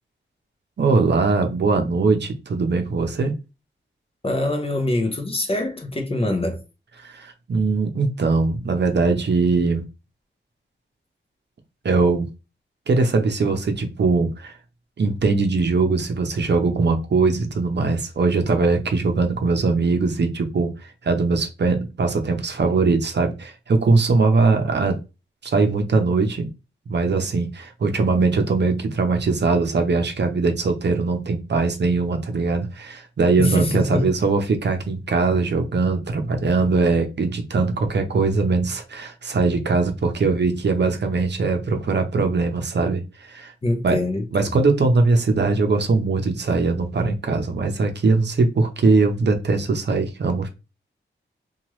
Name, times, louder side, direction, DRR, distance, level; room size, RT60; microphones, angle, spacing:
voice 1, 0.8-3.3 7.0-9.8 11.8-12.3 12.9-14.5 15.0-20.7 21.0-25.0 25.4-26.5 26.9-43.5 43.8-44.0 44.3-50.5, right 3 dB, 60° right, 0.6 m, -21 dB
voice 2, 4.2-6.6 33.4-34.1 43.6-44.5, left 2 dB, 30° left, 0.6 m, -24 dB
2.9 x 2.3 x 3.0 m
wide cardioid pair, 125°, 21 cm